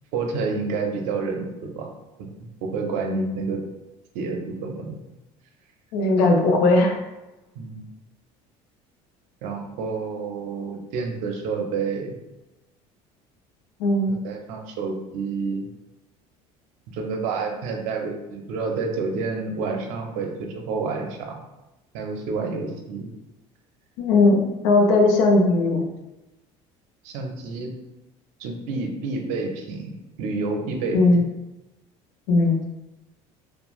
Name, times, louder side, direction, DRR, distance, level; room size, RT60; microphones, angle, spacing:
voice 1, 0.1-1.9 2.4-3.6 4.1-5.0 7.6-7.9 9.4-12.1 14.1-15.7 16.9-21.4 21.9-23.1 27.0-27.7 28.4-29.9 30.2-31.2, right 4 dB, 70° right, 3 dB, 0.5 m, -29 dB
voice 2, 5.9-7.0 13.8-14.2 24.0-25.8 30.9-31.2 32.3-32.6, left 2 dB, 90° left, 2 dB, 0.5 m, -18 dB
2.4 x 2.1 x 3.0 m, 1.0 s
cardioid pair, 160°, 13 cm